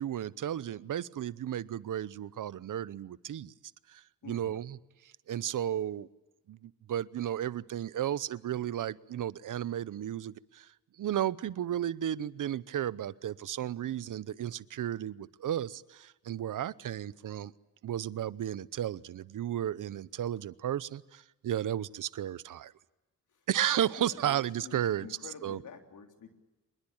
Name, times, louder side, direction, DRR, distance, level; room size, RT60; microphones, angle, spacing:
voice 1, 0.0-3.5 3.9-4.8 5.3-6.1 6.5-10.7 11.0-17.5 17.8-22.7 23.5-25.1 25.4-25.6, right 11 dB, 90° right, 19 dB, 0.8 m, -33 dB
voice 2, 4.2-4.6 23.3-23.5 24.0-26.3, left 6 dB, 80° left, 6 dB, 3.4 m, -48 dB
25.5 x 21.5 x 8.8 m, 1.0 s
cardioid pair, 85°, 30 cm